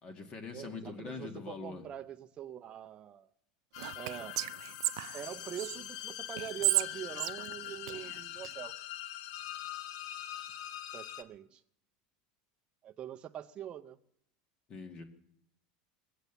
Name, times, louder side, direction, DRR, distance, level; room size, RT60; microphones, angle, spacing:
voice 1, 0.0-1.9 14.7-15.0, left 4 dB, 35° left, 5 dB, 2.1 m, -43 dB
voice 2, 0.5-3.3 3.9-4.4 5.1-8.8 10.4-10.5 10.9-11.6 12.8-14.0, right 10 dB, 30° right, 5 dB, 0.6 m, -44 dB
sound 1, 3.7-11.2, left 12 dB, 70° left, 1.0 m, -43 dB
Whispering, 3.8-5.8 6.4-8.5, right 18 dB, 75° right, 0.5 m, -34 dB
21.0 x 8.2 x 6.9 m, 0.72 s
supercardioid pair, 135°, 3 cm